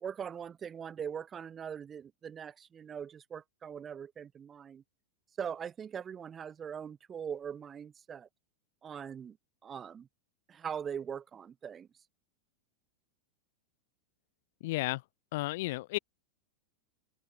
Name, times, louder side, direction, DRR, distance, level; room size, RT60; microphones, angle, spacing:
voice 1, 0.0-4.8 5.4-8.3 8.8-9.4 9.6-10.1 10.5-11.9, right 7 dB, 20° right, 0.4 m, -41 dB
voice 2, 14.6-15.0 15.3-16.0, left 20 dB, 50° left, 0.5 m, -33 dB
figure-of-eight pair, 90°, 0 cm